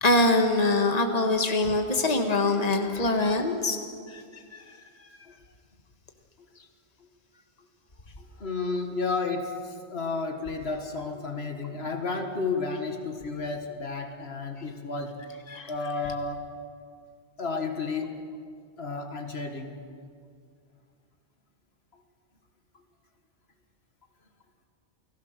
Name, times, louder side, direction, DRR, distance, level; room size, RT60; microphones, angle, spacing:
voice 1, 0.0-3.8 4.1-4.2 4.5-4.6 15.5-15.7, left 2 dB, 40° left, 5 dB, 1.7 m, -23 dB
voice 2, 0.6-1.3 2.3-3.3 8.2-15.2 15.7-16.5 17.4-18.2 18.8-19.9, left 4 dB, 75° left, 5 dB, 2.0 m, -33 dB
29.0 x 19.0 x 6.6 m, 2.2 s
omnidirectional pair, 1.1 m